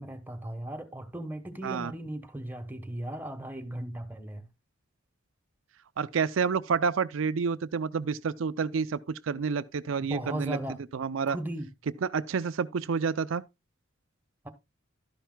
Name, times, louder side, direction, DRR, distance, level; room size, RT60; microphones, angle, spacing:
voice 1, 0.0-4.5 10.1-10.8 11.3-11.7 14.4-14.5, right 1 dB, 10° right, 1.2 m, -37 dB
voice 2, 6.0-10.6 10.9-11.4 12.1-13.4, right 5 dB, 80° right, 0.5 m, -29 dB
12.5 x 10.0 x 2.3 m
head